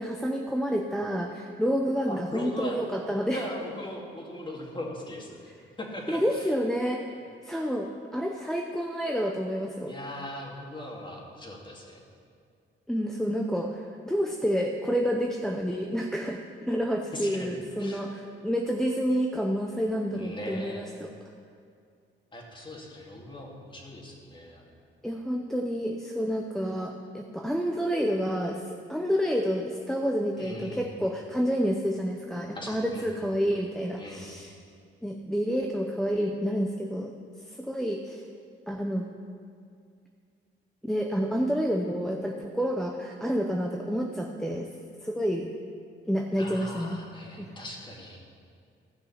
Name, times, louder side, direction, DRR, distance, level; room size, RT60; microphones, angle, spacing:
voice 1, 0.0-3.4 6.1-7.0 7.4-9.9 12.9-16.4 16.7-21.1 25.0-28.6 28.9-34.5 35.0-37.1 37.5-38.2 38.7-39.0 40.8-44.7 45.0-45.5 46.1-47.0 47.4-47.5, equal, ahead, 1 dB, 0.7 m, -29 dB
voice 2, 2.1-2.8 3.3-5.5 5.8-6.5 9.9-12.0 17.1-17.5 17.8-18.0 20.1-20.9 22.3-24.8 30.4-30.9 32.5-33.2 34.0-34.3 46.3-48.2, left 1 dB, 25° left, -1 dB, 2.4 m, -39 dB
15.0 x 6.2 x 5.8 m, 2.3 s
cardioid pair, 90°, 20 cm